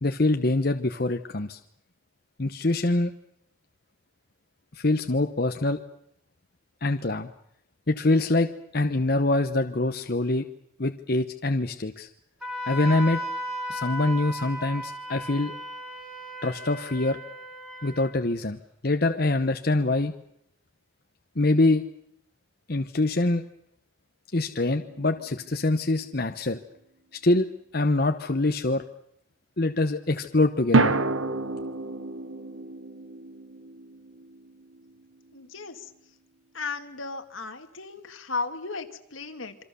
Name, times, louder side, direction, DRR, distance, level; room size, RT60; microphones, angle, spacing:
voice 1, 0.0-1.6 2.4-3.1 4.8-5.8 6.8-7.3 7.9-10.4 10.8-12.1 12.7-13.2 13.7-15.6 16.4-17.2 17.8-20.1 21.4-21.8 22.7-23.4 24.3-26.6 27.2-27.5 27.7-28.8 29.6-30.9, left 2 dB, 50° left, 7 dB, 1.0 m, -24 dB
Wind instrument woodwind instrument, 12.4-18.2, equal, 5° right, 3.2 m, -35 dB
sound 1, 24.8-25.9 30.7-35.1, right 2 dB, 90° right, 1.2 m, -29 dB
voice 2, 35.3-35.9 36.5-39.6, left 4 dB, 85° left, 6 dB, 2.2 m, -35 dB
27.0 x 24.5 x 6.9 m, 0.73 s
head